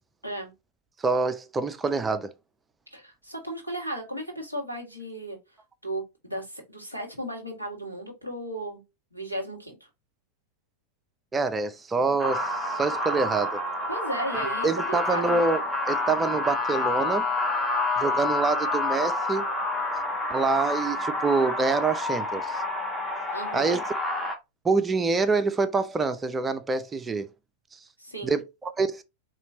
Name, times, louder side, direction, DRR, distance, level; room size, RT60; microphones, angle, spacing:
voice 1, 1.0-2.3 11.3-13.6 14.6-15.6 15.9-17.3 18.0-19.5 20.3-22.6 23.5-23.8 24.6-27.3 28.2-29.0, right 4 dB, 15° right, 0.5 m, -26 dB
voice 2, 2.9-5.4 5.8-8.8 9.1-9.9 13.9-15.4 23.3-23.8 28.0-28.4, right 1 dB, 90° left, 1.6 m, -35 dB
sound 1, 12.2-24.4, left 2 dB, 10° left, 1.2 m, -28 dB
4.4 x 3.0 x 2.8 m
figure-of-eight pair, 90°, 0 cm